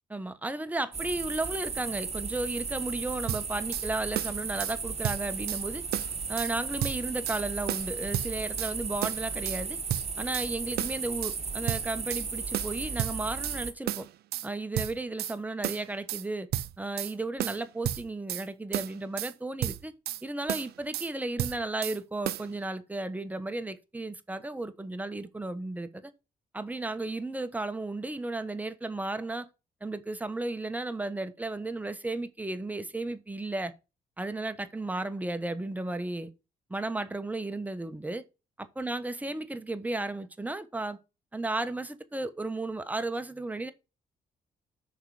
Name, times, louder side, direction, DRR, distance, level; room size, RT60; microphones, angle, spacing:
voice 1, 0.1-5.8 6.3-9.8 10.2-14.1 14.4-16.5 16.8-19.9 20.2-26.1 26.5-29.5 29.8-33.7 34.2-36.3 36.7-38.2 38.6-41.0 41.3-43.7, right 2 dB, 10° right, 1.2 m, -34 dB
sound 1, 0.9-13.7, right 5 dB, 40° right, 1.5 m, -35 dB
sound 2, 3.3-3.9 4.2-4.8 5.0-5.6 5.9-6.5 6.8-7.4 7.7-8.7 9.0-9.6 9.9-10.5 10.8-11.4 11.7-12.3 12.5-13.6 13.9-14.5 14.8-15.4 15.6-16.2 16.5-17.1 17.4-18.5 18.7-19.3 19.6-20.2 20.5-21.1 21.4-22.0 22.3-22.5, right 13 dB, 75° right, 0.5 m, -32 dB
6.5 x 4.7 x 6.5 m
supercardioid pair, 65°, 17 cm